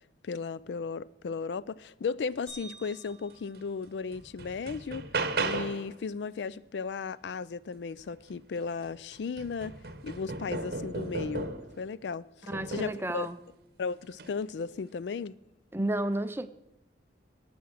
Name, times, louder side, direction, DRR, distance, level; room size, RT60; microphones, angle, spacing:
voice 1, 0.2-5.0 5.4-9.7 10.0-13.3 13.8-15.3, left 5 dB, 75° left, 0.4 m, -35 dB
sound 1, 2.5-4.8, right 4 dB, 5° left, 6.5 m, -52 dB
sound 2, 3.5-3.6 4.1-5.9 8.3-8.4 8.8-11.8 12.5-13.1 14.1-14.3, right 3 dB, 55° right, 0.9 m, -35 dB
voice 2, 12.5-13.4 15.7-16.5, right 1 dB, 15° right, 0.5 m, -31 dB
18.0 x 7.0 x 6.4 m
head